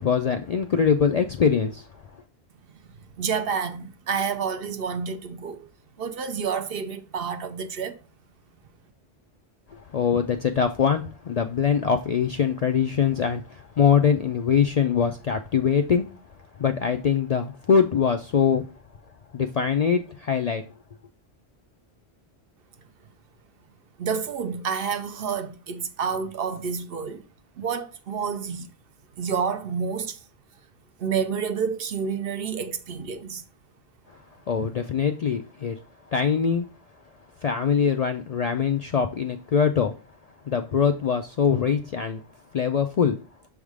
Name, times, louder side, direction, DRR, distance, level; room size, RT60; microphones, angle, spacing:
voice 1, 0.0-1.9 9.7-16.1 16.6-18.6 19.3-20.6 34.1-34.2 34.5-35.8 36.1-36.7 37.4-39.9 40.5-42.2 42.5-43.2, left 7 dB, 55° left, 0.4 m, -23 dB
voice 2, 3.2-5.7 6.0-8.0 24.0-27.3 27.6-28.7 29.2-30.3 31.0-33.4, right 6 dB, 65° right, 0.8 m, -29 dB
6.3 x 3.6 x 4.8 m
omnidirectional pair, 1.1 m